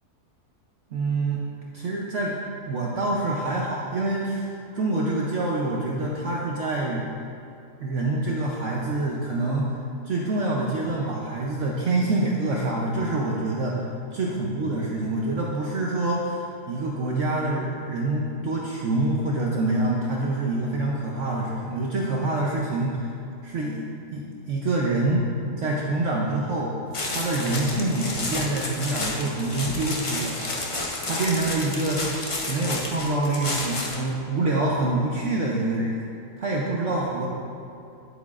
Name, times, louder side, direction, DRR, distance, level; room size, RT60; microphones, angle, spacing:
voice 1, 0.9-1.4 1.7-2.4 2.6-7.0 7.8-9.8 10.0-13.9 14.1-23.1 23.4-25.3 25.6-26.7 27.1-30.4 31.0-36.0 36.4-37.3, right 2 dB, 60° right, -3 dB, 0.9 m, -26 dB
sound 1, 26.9-34.1, left 2 dB, 35° left, 0.5 m, -31 dB
9.8 x 8.1 x 2.5 m, 2.7 s
omnidirectional pair, 1.7 m